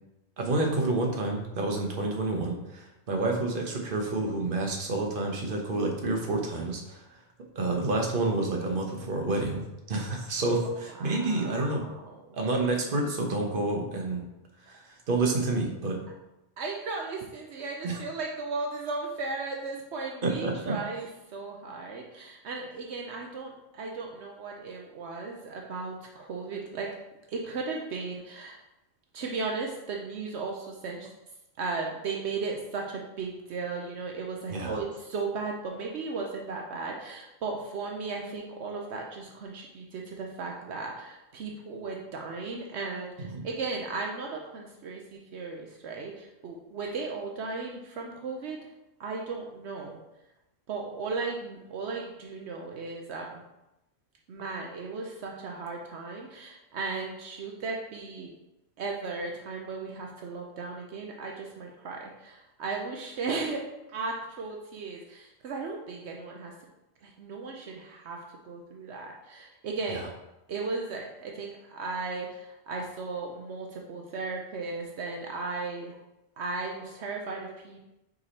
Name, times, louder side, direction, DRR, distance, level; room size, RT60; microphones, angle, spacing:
voice 1, 0.4-7.0 7.6-11.9 12.3-14.2 14.7-14.8 15.1-16.0 17.8-18.0 20.2-20.8 34.5-34.7 43.2-43.4 69.9-70.1, right 2 dB, 55° right, 1 dB, 1.1 m, -29 dB
voice 2, 11.0-12.4 16.6-26.9 27.3-28.6 29.1-31.1 31.6-48.7 49.0-50.0 50.7-53.4 54.3-58.3 58.8-66.5 67.0-70.1 70.5-76.0 76.4-77.8, right 4 dB, 75° right, 1 dB, 1.0 m, -36 dB
4.9 x 4.8 x 4.2 m, 0.94 s
omnidirectional pair, 1.2 m